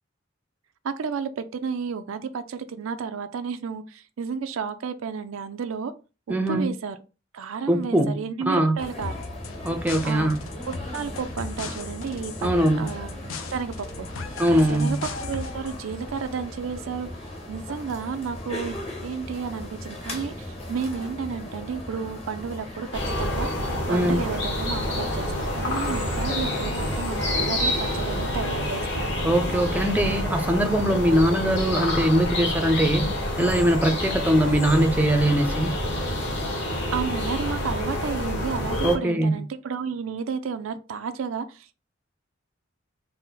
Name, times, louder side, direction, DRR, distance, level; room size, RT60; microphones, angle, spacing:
voice 1, 0.8-5.9 6.3-7.0 7.3-9.2 10.0-10.3 10.7-12.5 12.8-14.2 14.5-17.1 17.5-22.9 23.2-23.5 23.9-29.1 36.9-41.7, right 6 dB, 80° right, 0.4 m, -32 dB
voice 2, 6.3-6.7 7.7-8.1 8.5-8.8 9.6-10.4 12.4-12.9 14.4-15.0 23.9-24.2 29.2-33.1 33.4-35.7 38.8-39.3, right 1 dB, 10° right, 0.4 m, -21 dB
sound 1, 8.8-28.3, left 1 dB, 30° left, 0.9 m, -38 dB
sound 2, 9.0-15.8, left 3 dB, 80° left, 0.5 m, -37 dB
sound 3, 22.9-39.0, left 1 dB, 60° left, 1.2 m, -28 dB
4.0 x 2.1 x 3.7 m
head